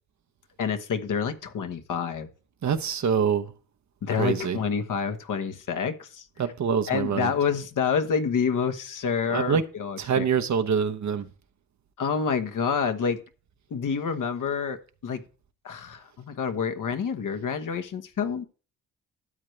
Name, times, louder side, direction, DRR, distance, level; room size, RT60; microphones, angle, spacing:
voice 1, 0.6-2.3 4.0-6.5 6.9-10.3 12.0-13.2 13.7-15.2 15.6-18.4, left 6 dB, 60° left, 1.3 m, -28 dB
voice 2, 2.6-3.5 4.2-4.6 6.4-7.3 9.3-9.6 10.0-11.3, right 7 dB, 55° right, 1.0 m, -25 dB
12.5 x 7.8 x 3.3 m
cardioid pair, 75°, 35 cm